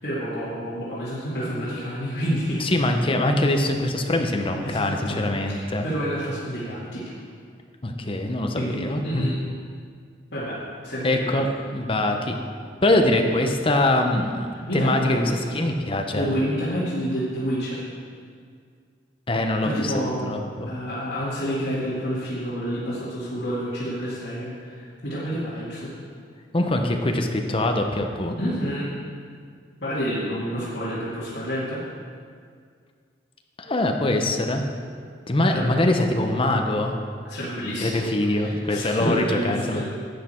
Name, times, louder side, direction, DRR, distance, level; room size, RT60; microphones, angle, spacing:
voice 1, 0.0-2.7 4.6-5.2 5.5-7.0 8.5-9.3 10.3-10.6 10.8-11.4 14.7-15.6 16.1-17.8 19.6-20.4 20.7-25.9 28.4-28.9 29.8-31.8 35.5-35.8 37.3-38.0 38.3-39.8, equal, 65° left, -11 dB, 2.4 m, -29 dB
voice 2, 2.6-5.9 7.8-9.2 11.0-11.5 11.7-12.4 12.8-14.5 14.7-15.3 15.5-16.3 19.3-19.9 20.3-20.7 26.5-28.4 33.6-34.6 35.3-36.9 37.8-39.8, left 1 dB, 30° left, 4 dB, 0.9 m, -23 dB
11.5 x 8.3 x 4.5 m, 2.1 s
head